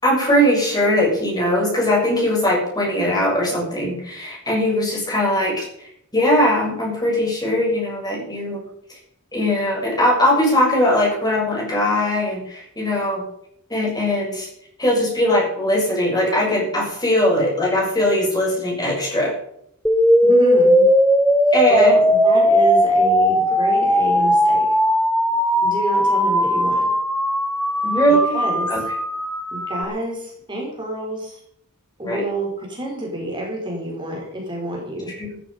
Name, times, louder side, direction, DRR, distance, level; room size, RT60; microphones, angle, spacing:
voice 1, 0.0-5.9 6.1-8.6 9.3-13.2 13.7-14.5 14.8-19.3 21.5-22.0 27.8-28.4 28.7-28.8 32.0-32.2 35.2-35.3, left 1 dB, 20° left, -2 dB, 6.9 m, -20 dB
sound 1, 19.9-29.9, equal, 5° left, 1.3 m, -17 dB
voice 2, 20.2-20.9 21.7-24.6 25.6-26.9 28.1-28.7 29.5-31.4 32.0-35.1, right 1 dB, 20° right, -2 dB, 4.6 m, -28 dB
14.0 x 14.0 x 5.4 m, 0.71 s
head